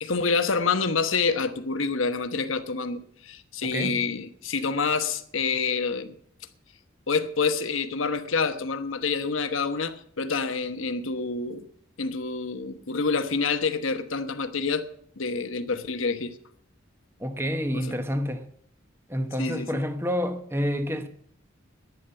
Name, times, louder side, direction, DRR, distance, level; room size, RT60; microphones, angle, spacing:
voice 1, 0.0-6.1 7.1-11.6 12.0-14.8 15.2-16.4 17.9-18.0 19.4-19.8, left 4 dB, 90° left, 1.1 m, -27 dB
voice 2, 3.7-4.1 17.2-18.5 19.1-21.1, equal, 10° right, 1.0 m, -28 dB
11.0 x 10.5 x 8.0 m
head